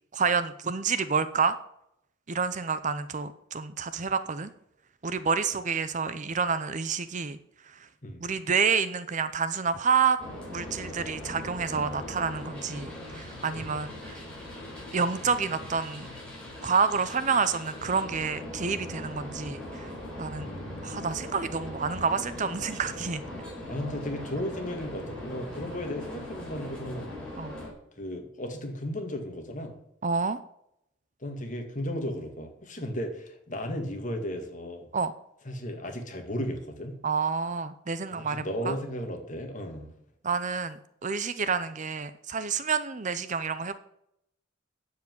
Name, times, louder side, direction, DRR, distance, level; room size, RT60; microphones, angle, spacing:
voice 1, 0.1-1.6 2.3-4.5 5.0-7.4 7.7-7.9 8.2-10.2 10.5-14.2 14.9-16.1 16.6-19.9 20.2-20.5 20.8-23.2 27.4-27.5 30.0-30.4 34.9-35.1 37.0-38.7 40.2-43.8, right 5 dB, 40° right, 13 dB, 0.6 m, -28 dB
sound 1, 10.2-27.7, left 1 dB, 5° left, 4.6 m, -40 dB
voice 2, 20.4-21.1 23.7-27.2 28.0-29.8 31.2-34.9 35.4-37.0 38.1-39.9, equal, 40° left, 4 dB, 2.3 m, -35 dB
9.4 x 7.8 x 9.4 m, 0.76 s
head